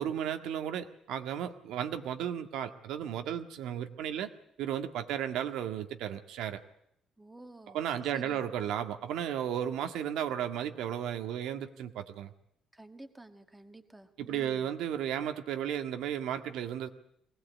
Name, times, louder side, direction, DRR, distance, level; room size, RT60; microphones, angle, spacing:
voice 1, 0.0-4.3 4.6-6.6 7.7-12.3 14.2-16.9, right 10 dB, 90° right, 7 dB, 1.8 m, -34 dB
voice 2, 7.2-7.9 8.1-8.4 12.7-14.7, right 2 dB, 10° right, 7 dB, 1.6 m, -51 dB
23.0 x 18.5 x 8.4 m, 0.75 s
cardioid pair, 160°, 0 cm